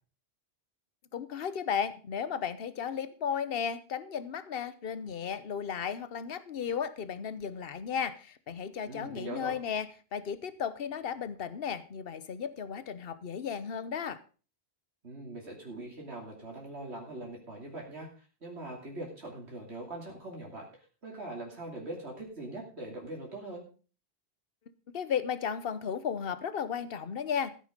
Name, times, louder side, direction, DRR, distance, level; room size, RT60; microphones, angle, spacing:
voice 1, 1.1-14.2 24.9-27.5, left 7 dB, 65° left, 15 dB, 1.1 m, -34 dB
voice 2, 8.9-9.6 15.0-23.6, right 2 dB, 85° right, -1 dB, 3.2 m, -42 dB
14.5 x 8.2 x 5.2 m, 0.37 s
omnidirectional pair, 1.1 m